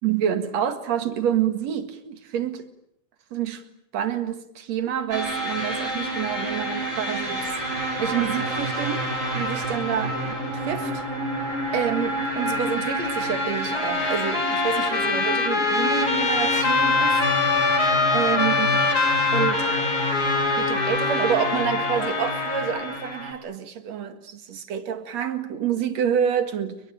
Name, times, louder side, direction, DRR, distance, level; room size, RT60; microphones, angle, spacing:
voice 1, 0.0-2.7 3.3-3.6 3.9-9.1 9.3-11.0 11.7-17.2 18.1-18.9 19.3-19.7 20.6-26.8, right 9 dB, 65° right, 3.1 m, -28 dB
sound 1, 5.1-23.3, equal, 25° right, 7.2 m, -28 dB
Trumpet, 13.7-22.9, left 5 dB, 35° left, 2.1 m, -24 dB
30.0 x 21.5 x 9.0 m
omnidirectional pair, 3.3 m